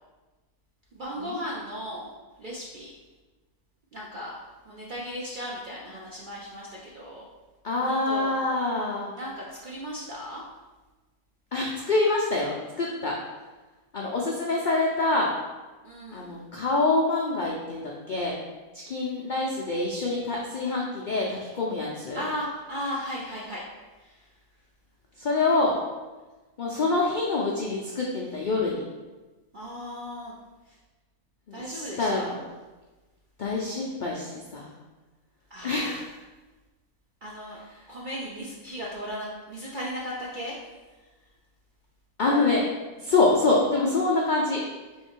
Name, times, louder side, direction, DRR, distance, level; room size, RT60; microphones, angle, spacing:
voice 1, 0.9-2.1 2.4-2.9 3.9-4.4 4.7-7.3 7.8-8.3 9.2-10.4 15.8-16.4 22.2-23.6 24.0-24.2 29.5-30.4 31.5-32.3 35.5-36.0 37.2-37.6 37.9-40.5, equal, 60° right, -4 dB, 0.5 m, -36 dB
voice 2, 7.6-9.1 11.5-13.1 13.9-15.3 16.1-18.3 18.9-22.3 25.2-25.7 26.6-28.8 31.5-32.4 33.4-34.7 35.6-36.0 42.2-42.6 43.0-44.6, left 3 dB, 75° left, -2 dB, 0.4 m, -26 dB
3.6 x 3.2 x 4.5 m, 1.2 s
omnidirectional pair, 1.6 m